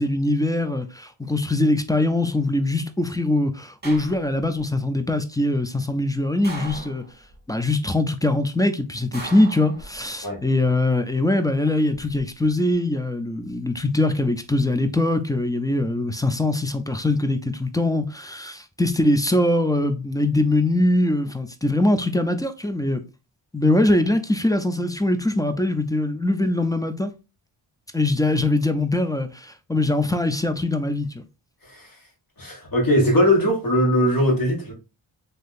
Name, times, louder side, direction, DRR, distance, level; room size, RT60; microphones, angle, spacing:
voice 1, 0.0-7.0 7.5-23.0 23.5-27.1 27.9-31.2, left 2 dB, 10° left, 0.4 m, -22 dB
sound 1, 3.8-4.6 6.4-7.4 9.1-10.3 11.7-12.2, right 2 dB, 20° right, 1.3 m, -38 dB
voice 2, 32.4-34.7, equal, 45° left, 1.7 m, -20 dB
3.4 x 2.7 x 2.5 m
cardioid pair, 65°, 47 cm